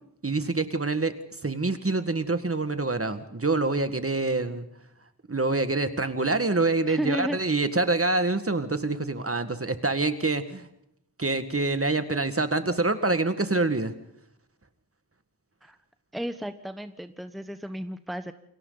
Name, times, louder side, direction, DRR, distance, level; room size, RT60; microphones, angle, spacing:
voice 1, 0.2-1.1 1.4-4.7 5.3-10.7 11.2-13.9, right 3 dB, 35° right, 10 dB, 1.8 m, -26 dB
voice 2, 6.9-7.4 15.6-15.8 16.1-18.3, equal, ahead, 9 dB, 1.2 m, -33 dB
29.0 x 22.5 x 4.0 m, 0.76 s
wide cardioid pair, 60°, 39 cm